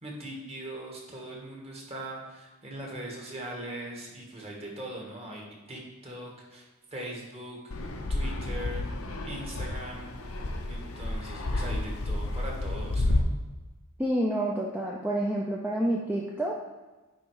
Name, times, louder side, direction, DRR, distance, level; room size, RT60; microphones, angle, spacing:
voice 1, 0.0-8.9 9.3-10.1 10.7-13.3, right 1 dB, 25° right, -1 dB, 1.5 m, -41 dB
Fixed-wing aircraft airplane, 7.7-13.2, left 2 dB, 70° left, 0.8 m, -31 dB
voice 2, 14.0-16.5, right 1 dB, 5° right, -3 dB, 0.5 m, -28 dB
9.5 x 3.6 x 4.8 m, 1.2 s
head